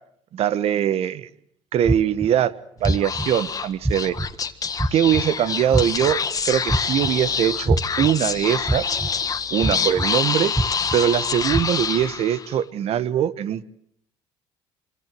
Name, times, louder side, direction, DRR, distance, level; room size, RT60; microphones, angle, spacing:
voice 1, 0.3-1.3 1.7-2.5 2.8-4.2 4.9-6.2 6.4-9.0 9.5-10.5 10.9-13.6, right 10 dB, 55° right, 16 dB, 1.3 m, -22 dB
sound 1, 1.9-2.3 2.8-3.3 3.8-4.3 4.8-5.2 5.7-6.1 6.7-7.1 7.7-8.1 8.7-9.1 9.6-10.1 10.6-11.0 11.5-11.6, right 1 dB, 10° right, 1.1 m, -22 dB
Speech / Whispering, 2.8-12.6, left 6 dB, 30° left, 1.7 m, -26 dB
25.5 x 24.5 x 7.7 m, 0.68 s
cardioid pair, 115°, 12 cm